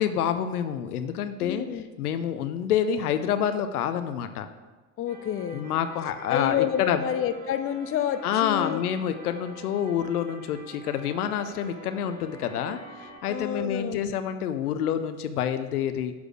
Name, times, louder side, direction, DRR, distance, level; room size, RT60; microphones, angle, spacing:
voice 1, 0.0-1.6 2.0-4.5 5.5-7.0 8.2-16.1, left 9 dB, 80° left, 10 dB, 0.6 m, -28 dB
voice 2, 1.4-1.9 5.0-5.7 6.3-8.8 13.3-14.1, left 9 dB, 30° left, 10 dB, 0.6 m, -29 dB
sound 1, 5.1-13.2, right 1 dB, 20° right, 2.2 m, -46 dB
6.8 x 4.7 x 6.1 m, 1.3 s
hypercardioid pair, 65°, 44 cm